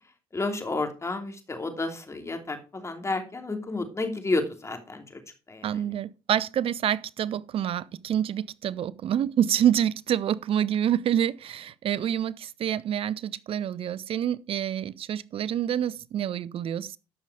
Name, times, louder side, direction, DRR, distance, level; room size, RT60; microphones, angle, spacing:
voice 1, 0.3-5.2 5.5-5.7, left 2 dB, 25° left, 2.9 m, -31 dB
voice 2, 5.6-17.0, right 10 dB, 55° right, 0.7 m, -27 dB
13.0 x 5.7 x 4.9 m
supercardioid pair, 70°, 11 cm